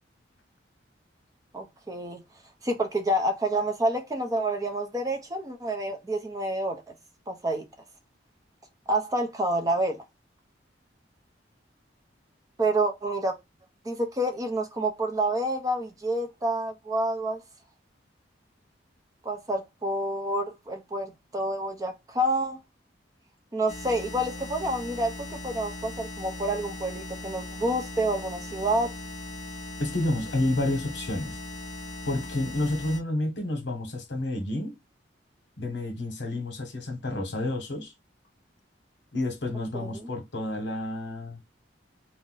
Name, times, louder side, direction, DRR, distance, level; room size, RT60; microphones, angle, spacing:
voice 1, 1.5-2.2 2.6-6.8 7.3-7.6 8.9-10.0 12.6-13.4 13.8-17.4 19.2-22.6 23.5-25.1 25.4-28.9 39.7-40.1, right 1 dB, 20° right, 0.5 m, -28 dB
sound 1, 23.7-33.0, left 1 dB, 30° left, 0.7 m, -39 dB
voice 2, 29.8-31.4 32.1-34.7 35.6-37.9 39.1-41.4, left 1 dB, 70° left, 0.9 m, -30 dB
2.5 x 2.0 x 3.8 m
head